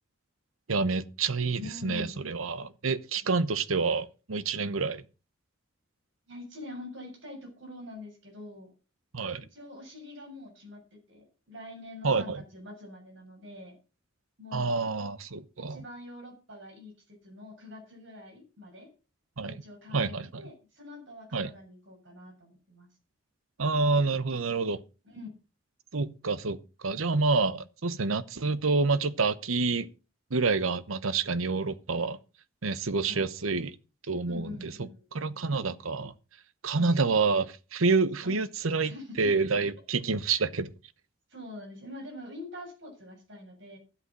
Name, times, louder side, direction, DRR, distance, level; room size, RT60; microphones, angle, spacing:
voice 1, 0.7-5.0 9.1-9.4 12.0-12.4 14.5-15.8 19.4-19.6 19.9-20.4 21.3-21.5 23.6-24.8 25.9-26.6 26.8-29.9 30.3-32.2 32.6-33.7 34.1-34.7 35.1-36.1 36.6-40.7, right 4 dB, 85° right, 0.9 m, -28 dB
voice 2, 1.5-2.2 3.2-3.3 6.3-8.7 9.5-13.8 14.4-14.7 15.7-18.9 19.4-22.9 25.0-25.3 33.1-33.2 34.3-35.1 36.7-37.0 38.2-38.4 38.8-39.3 40.2-40.4 41.3-43.8, left 2 dB, 65° right, 7.0 m, -45 dB
12.5 x 8.3 x 6.1 m
head